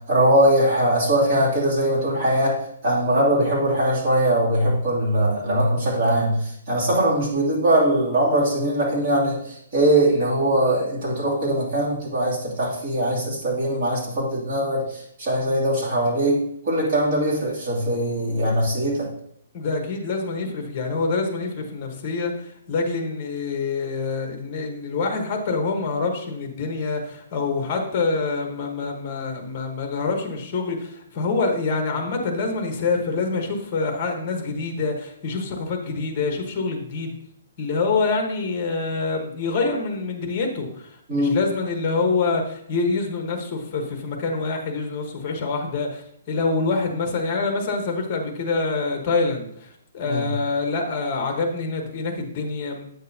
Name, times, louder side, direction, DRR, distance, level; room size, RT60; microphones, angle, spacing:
voice 1, 0.0-2.5 2.8-16.4 16.6-19.1 41.1-41.4 50.0-50.3, right 1 dB, 35° right, -5 dB, 2.6 m, -21 dB
voice 2, 19.5-37.1 37.6-52.9, left 3 dB, 30° left, 3 dB, 1.2 m, -26 dB
8.6 x 6.5 x 2.8 m, 0.71 s
hypercardioid pair, 170°, 0 cm